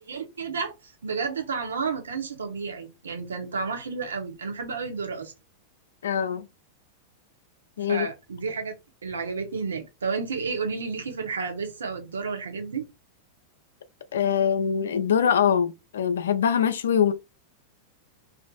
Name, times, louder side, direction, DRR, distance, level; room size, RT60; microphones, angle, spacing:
voice 1, 0.1-5.3 7.9-8.7 9.0-12.9, right 5 dB, 85° right, 0.6 m, -31 dB
voice 2, 6.0-6.5 7.8-8.1 14.1-17.1, left 8 dB, 80° left, 0.3 m, -23 dB
2.4 x 2.4 x 2.3 m
hypercardioid pair, 105°, 0 cm